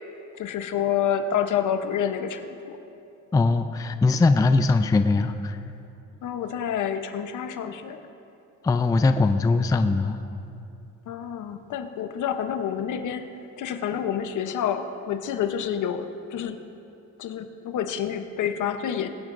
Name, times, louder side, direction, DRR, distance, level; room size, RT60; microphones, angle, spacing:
voice 1, 0.3-2.8 6.2-8.0 11.1-13.3 13.6-16.6 17.2-19.1, left 8 dB, 65° left, 8 dB, 0.9 m, -28 dB
voice 2, 3.3-5.6 8.6-10.2, left 3 dB, 10° left, 9 dB, 0.4 m, -21 dB
22.5 x 9.1 x 2.6 m, 2.7 s
cardioid pair, 95°, 33 cm